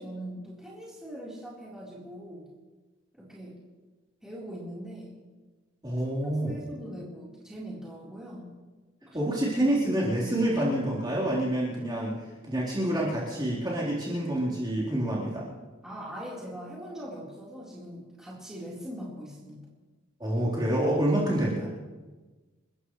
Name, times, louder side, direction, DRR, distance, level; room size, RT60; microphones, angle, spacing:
voice 1, 0.0-2.5 3.1-3.6 4.2-5.2 6.4-8.5 9.0-9.3 15.8-19.7, equal, 5° right, -7 dB, 4.1 m, -41 dB
voice 2, 5.8-6.6 9.1-12.2 12.4-15.5 20.2-21.7, right 1 dB, 20° right, -6 dB, 4.0 m, -27 dB
29.0 x 14.5 x 3.3 m, 1.3 s
head